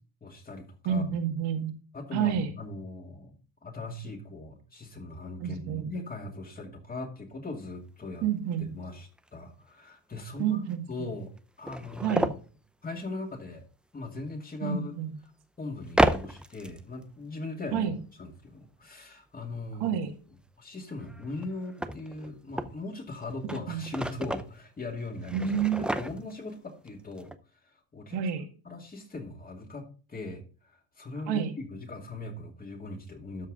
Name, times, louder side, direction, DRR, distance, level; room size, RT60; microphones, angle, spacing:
voice 1, 0.2-1.0 1.9-8.2 8.7-10.6 10.9-11.3 11.6-12.2 12.8-13.6 13.9-14.9 15.6-17.8 18.2-20.0 20.6-25.4 25.8-27.3 27.7-28.2 28.6-33.5, left 2 dB, 20° left, 3 dB, 2.4 m, -39 dB
voice 2, 0.9-1.7 2.1-2.5 5.4-5.9 8.2-8.7 10.4-10.9 12.0-12.3 14.6-15.2 17.7-18.0 19.8-20.1 23.7-23.9 25.3-25.8 28.1-28.4 31.3-31.5, right 8 dB, 65° right, 5 dB, 2.1 m, -29 dB
sound 1, 8.1-8.2 8.5-8.6 9.2-9.3 10.4-10.5 10.7-10.8 11.4-12.5 14.5-14.6 15.9-17.0 21.0-22.8 23.2-24.6 25.2-26.5 26.9-27.0 27.2-27.4, right 1 dB, ahead, 0.5 m, -31 dB
13.0 x 4.8 x 3.8 m, 0.36 s
supercardioid pair, 110°, 44 cm